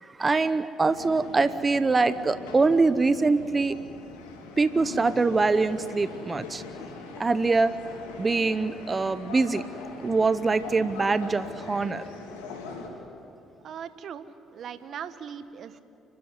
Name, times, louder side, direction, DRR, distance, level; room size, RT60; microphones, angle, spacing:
voice 1, 0.0-3.7 4.6-6.6 7.2-7.7 8.2-9.6 10.0-12.0, right 3 dB, 30° right, 13 dB, 0.9 m, -24 dB
sound 1, 0.8-12.9, left 4 dB, 85° left, 3.3 m, -41 dB
voice 2, 13.6-15.8, right 8 dB, 60° right, 12 dB, 1.3 m, -39 dB
30.0 x 13.0 x 9.8 m, 2.6 s
hypercardioid pair, 55°, 0 cm